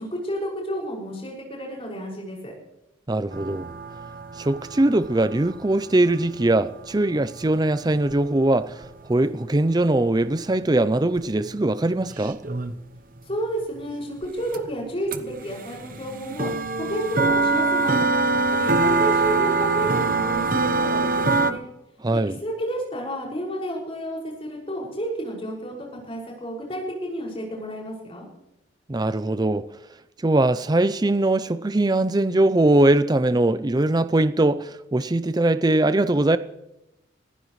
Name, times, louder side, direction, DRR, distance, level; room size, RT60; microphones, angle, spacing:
voice 1, 0.0-2.5 13.2-16.5 16.8-21.6 22.1-28.3, right 1 dB, 30° left, 6.1 m, -31 dB
voice 2, 3.1-3.7 4.4-12.4 22.0-22.4 28.9-29.7 30.2-36.4, right 2 dB, 20° right, 0.5 m, -21 dB
sound 1, 3.3-8.9 10.6-10.7 11.2-11.3 11.5-13.0 14.2-14.3 14.5-14.7 15.1-21.5, right 3 dB, 45° right, 1.0 m, -24 dB
26.0 x 15.5 x 3.2 m
head